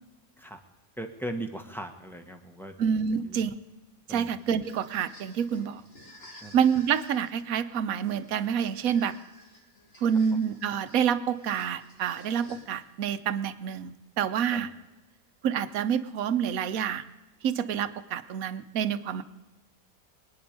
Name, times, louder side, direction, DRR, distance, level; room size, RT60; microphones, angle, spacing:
voice 1, 1.0-2.7 3.2-3.4 4.1-4.3 6.4-6.5 14.5-14.6, right 1 dB, ahead, 4 dB, 1.2 m, -38 dB
voice 2, 2.8-3.5 4.1-5.8 6.5-9.1 10.0-14.7 15.4-17.1 17.4-19.2, right 8 dB, 75° right, 13 dB, 1.2 m, -27 dB
sound 1, 4.4-13.0, equal, 40° left, 2.7 m, -53 dB
24.0 x 9.7 x 5.2 m, 1.1 s
omnidirectional pair, 1.5 m